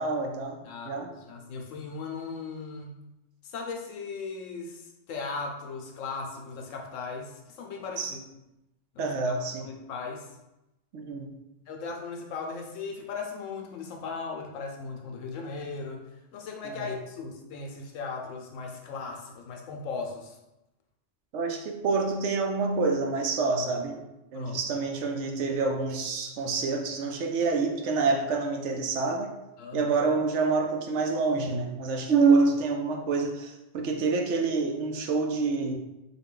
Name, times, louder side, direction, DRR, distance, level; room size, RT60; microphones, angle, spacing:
voice 1, 0.0-0.6 0.9-1.1 8.0-8.1 9.0-9.6 10.9-11.3 16.8-16.9 21.3-24.0 24.3-29.3 29.7-35.8, right 4 dB, 70° right, 3 dB, 0.9 m, -27 dB
voice 2, 0.7-3.0 3.4-8.2 8.9-10.3 11.7-16.0 16.3-20.4 24.3-24.6 29.6-29.9, left 4 dB, 85° left, 2 dB, 1.0 m, -38 dB
3.9 x 2.3 x 3.7 m, 0.94 s
omnidirectional pair, 1.3 m